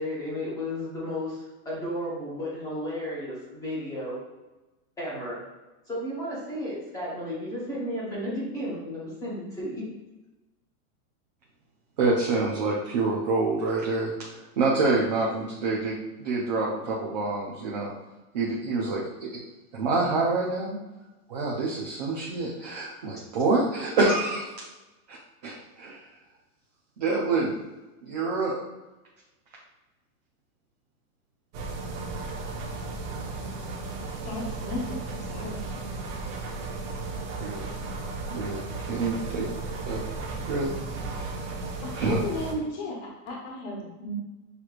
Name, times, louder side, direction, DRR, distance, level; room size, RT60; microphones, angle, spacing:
voice 1, 0.0-4.2 5.0-5.4 5.9-9.8, equal, 10° left, -8 dB, 0.9 m, -33 dB
voice 2, 12.0-17.9 18.3-19.4 19.7-20.8 21.3-24.4 25.1-25.2 25.4-26.0 27.0-27.5 28.0-28.6 37.4-37.7 38.3-38.6 38.9-39.5 39.8-40.0 40.4-40.7 41.1-41.3 42.0-42.2, right 3 dB, 30° right, -4 dB, 0.4 m, -27 dB
sound 1, 31.5-42.5, right 3 dB, 50° right, 1.0 m, -35 dB
voice 3, 34.1-35.7 41.8-44.1, left 2 dB, 40° left, -2 dB, 1.1 m, -35 dB
6.5 x 3.0 x 2.4 m, 1.1 s
supercardioid pair, 170°, 45 cm